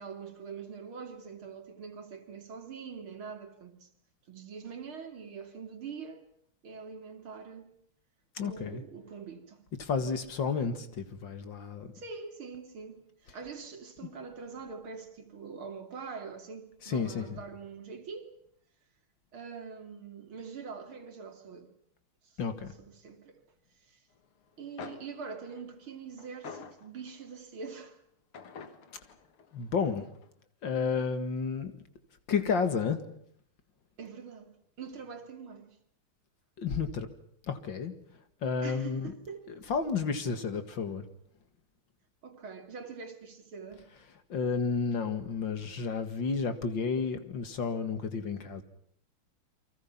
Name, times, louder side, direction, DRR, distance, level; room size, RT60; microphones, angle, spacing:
voice 1, 0.0-3.9 4.3-6.2 6.6-7.7 8.4-9.6 11.9-18.3 19.3-21.7 22.2-22.4 22.8-23.4 23.9-24.0 24.6-28.0 34.0-34.5 34.8-35.8 38.6-39.5 42.2-43.9, right 5 dB, 75° right, 3.5 m, -44 dB
voice 2, 8.4-8.8 9.8-11.9 16.8-17.4 22.4-22.7 29.5-30.1 30.6-31.7 32.3-33.0 36.6-37.1 37.5-37.9 38.4-39.1 39.7-41.0 44.3-48.6, left 5 dB, 60° left, 2.6 m, -31 dB
sound 1, 24.5-24.6 24.8-27.4 28.3-30.3, left 6 dB, 90° left, 2.7 m, -48 dB
29.5 x 24.0 x 5.9 m
omnidirectional pair, 2.3 m